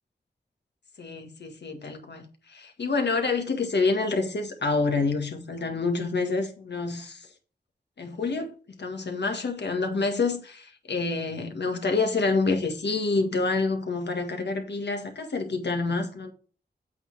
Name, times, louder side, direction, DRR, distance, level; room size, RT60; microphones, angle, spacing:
voice 1, 1.0-2.2 2.5-7.3 8.0-16.3, left 3 dB, 85° left, 1.7 m, -27 dB
8.2 x 4.1 x 4.7 m
wide cardioid pair, 65°, 17 cm